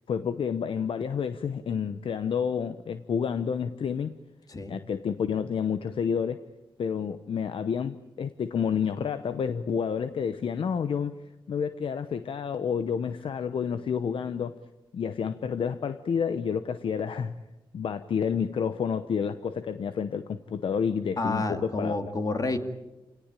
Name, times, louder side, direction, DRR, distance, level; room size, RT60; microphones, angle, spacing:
voice 1, 0.1-4.2 4.7-6.4 6.8-11.2 11.5-14.6 14.9-17.4 17.7-22.1, left 7 dB, 70° left, 11 dB, 0.9 m, -29 dB
voice 2, 21.2-22.6, left 2 dB, 40° left, 7 dB, 2.4 m, -29 dB
28.5 x 18.5 x 9.0 m, 1.1 s
wide cardioid pair, 100°, 9 cm